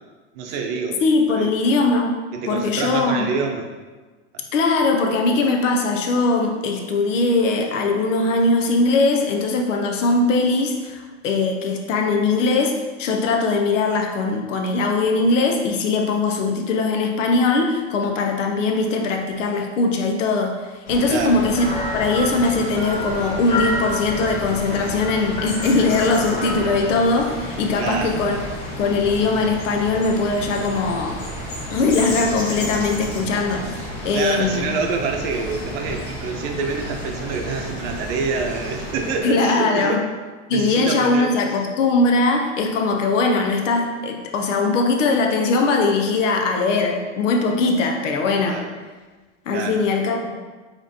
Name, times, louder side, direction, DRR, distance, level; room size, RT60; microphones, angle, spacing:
voice 1, 0.3-1.0 1.3-1.5 2.3-3.7 4.3-4.4 21.1-21.4 27.8-28.2 34.1-40.0 40.5-41.3 48.4-48.7 49.5-49.8, right 5 dB, 55° right, 3 dB, 0.8 m, -26 dB
voice 2, 1.0-2.1 2.5-3.3 4.5-21.6 21.9-28.3 28.8-31.2 31.7-33.8 34.0-34.7 39.2-40.0 40.5-48.6 49.5-50.3, left 3 dB, 85° left, 3 dB, 0.7 m, -20 dB
sound 1, 20.9-39.2, left 1 dB, 45° left, 1.4 m, -32 dB
sound 2, 21.5-26.7, left 1 dB, 10° left, 0.7 m, -29 dB
5.0 x 3.2 x 2.8 m, 1.3 s
hypercardioid pair, 110°, 36 cm